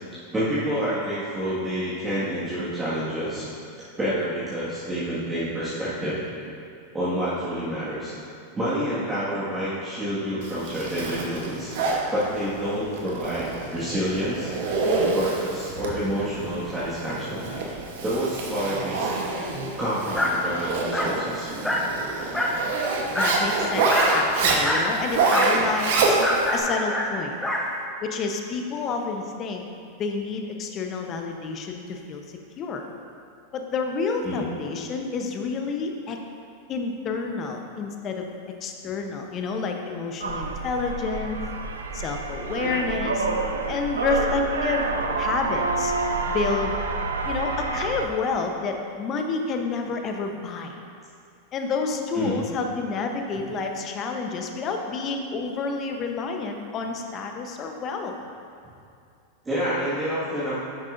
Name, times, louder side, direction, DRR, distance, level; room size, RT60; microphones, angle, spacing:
voice 1, 0.3-3.5 4.0-6.2 6.9-8.1 8.5-11.7 12.1-14.5 15.1-19.1 19.8-21.5 34.2-34.5 52.1-52.4 59.5-60.5, equal, 15° right, -11 dB, 1.8 m, -28 dB
Zipper (clothing), 10.4-26.6, right 3 dB, 65° right, 1.0 m, -27 dB
Dog, 20.1-20.4 20.9-21.2 21.6-21.9 22.3-22.6 23.1-23.4 23.9-24.2 24.6-24.9 25.3-25.6 26.2-27.7, left 1 dB, 10° left, 0.9 m, -25 dB
voice 2, 23.1-26.2 26.5-27.4 28.0-29.6 30.0-32.2 32.6-32.8 33.5-36.2 36.7-38.3 38.6-41.4 41.9-43.3 43.7-44.9 45.2-45.9 46.3-46.8 47.2-50.8 51.5-58.1, left 4 dB, 35° left, 3 dB, 0.8 m, -29 dB
sound 1, 40.2-48.1, right 3 dB, 90° right, 0.5 m, -28 dB
10.0 x 6.1 x 2.6 m, 2.4 s
hypercardioid pair, 100°, 0 cm